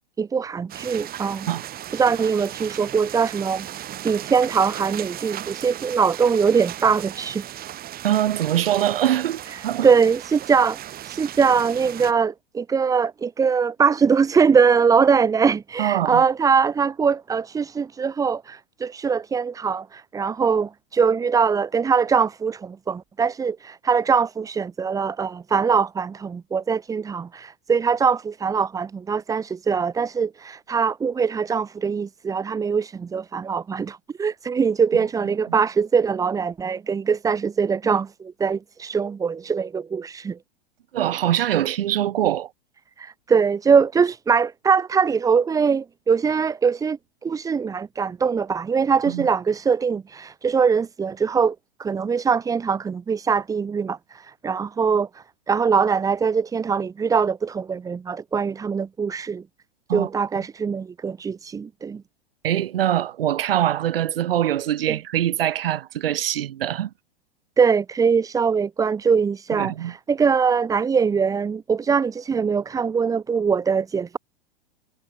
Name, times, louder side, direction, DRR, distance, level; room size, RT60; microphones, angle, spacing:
voice 1, 0.2-1.5 1.9-3.7 4.0-7.4 9.5-10.8 11.0-40.4 43.0-59.4 59.9-62.0 64.9-65.0 67.6-74.2, right 6 dB, 10° right, 0.8 m, -22 dB
sound 1, 0.7-12.1, right 12 dB, 30° right, 7.5 m, -36 dB
voice 2, 8.0-9.9 15.8-16.2 40.9-42.5 49.1-49.3 59.9-60.1 62.4-66.9 69.5-69.9, right 11 dB, 70° right, 4.8 m, -23 dB
hypercardioid pair, 115°, 30 cm